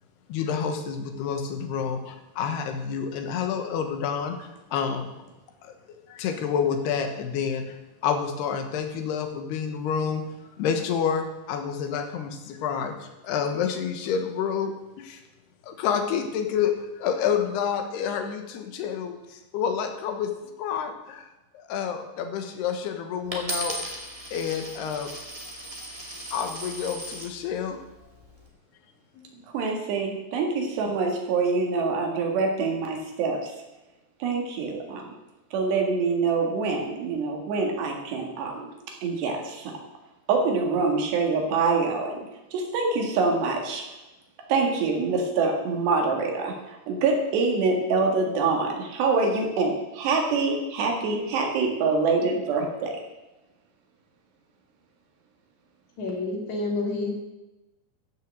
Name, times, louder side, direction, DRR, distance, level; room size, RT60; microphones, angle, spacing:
voice 1, 0.3-4.4 4.7-5.1 6.1-7.6 8.0-10.2 10.6-12.9 13.2-14.7 15.0-15.2 15.7-16.7 17.0-19.2 19.5-20.3 20.6-21.2 21.7-23.8 24.3-25.1 26.3-27.8 29.3-29.4, left 7 dB, 75° left, 6 dB, 3.2 m, -28 dB
Coin (dropping), 23.3-27.3 28.0-28.4, right 1 dB, 15° right, 1.0 m, -36 dB
voice 2, 29.5-33.5 34.2-35.1 35.5-38.7 39.0-39.7 40.3-42.2 42.5-43.9 44.5-53.0, right 4 dB, 80° right, 2 dB, 4.0 m, -25 dB
voice 3, 56.0-57.2, left 2 dB, 45° left, -1 dB, 3.6 m, -29 dB
14.5 x 6.6 x 7.6 m, 1.0 s
omnidirectional pair, 4.9 m